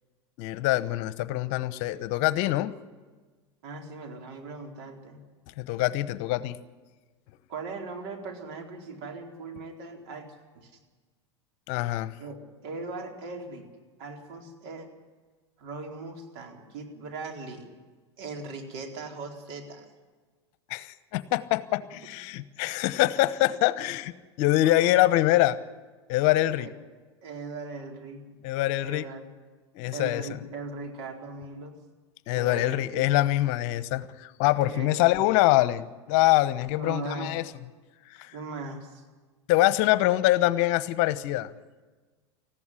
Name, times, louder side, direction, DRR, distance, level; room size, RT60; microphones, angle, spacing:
voice 1, 0.4-2.7 5.6-6.6 11.7-12.1 20.7-24.1 24.4-25.6 26.1-26.7 28.4-29.0 29.7-30.2 32.3-37.4 38.2-38.3 39.5-41.5, left 16 dB, 55° left, 15 dB, 1.0 m, -24 dB
voice 2, 3.6-5.2 7.5-10.7 12.2-12.4 12.6-13.6 14.0-14.9 15.6-17.7 18.2-19.9 24.6-25.0 26.5-26.8 27.2-28.4 28.8-29.3 29.9-31.7 32.3-33.1 34.6-35.2 36.8-37.3 38.3-39.0, right 3 dB, 65° right, 2 dB, 4.3 m, -39 dB
19.5 x 15.0 x 9.8 m, 1.3 s
hypercardioid pair, 95°, 14 cm